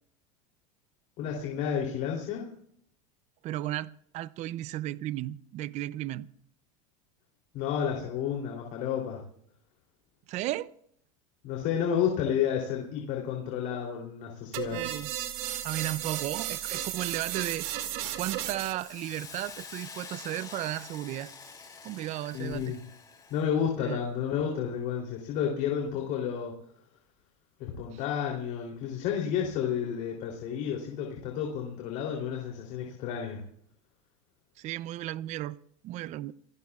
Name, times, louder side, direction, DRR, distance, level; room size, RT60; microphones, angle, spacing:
voice 1, 1.2-2.5 7.5-9.2 11.4-14.8 22.3-22.8 23.3-26.6 27.6-33.4, left 8 dB, 55° left, 3.3 m, -31 dB
voice 2, 3.4-6.3 10.3-10.7 14.7-15.1 15.6-17.7 18.2-21.3 21.8-22.7 23.8-24.0 27.9-28.0 34.6-35.6 35.8-36.3, right 14 dB, 45° right, 0.5 m, -34 dB
sound 1, 14.5-18.9, right 12 dB, 65° right, 2.5 m, -34 dB
Hiss, 18.8-23.5, left 5 dB, 20° left, 3.8 m, -46 dB
28.0 x 17.5 x 2.4 m
supercardioid pair, 120°, 17 cm